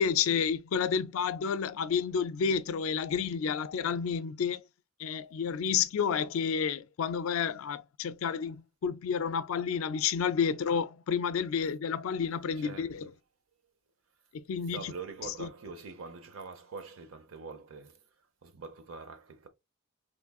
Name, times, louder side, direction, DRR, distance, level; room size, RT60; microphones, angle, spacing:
voice 1, 0.0-4.6 5.0-13.1 14.3-14.9 15.4-15.5, left 7 dB, 80° left, 0.4 m, -30 dB
voice 2, 12.6-13.1 14.7-18.0 18.4-19.5, right 4 dB, 80° right, 0.7 m, -44 dB
3.5 x 3.1 x 2.3 m
head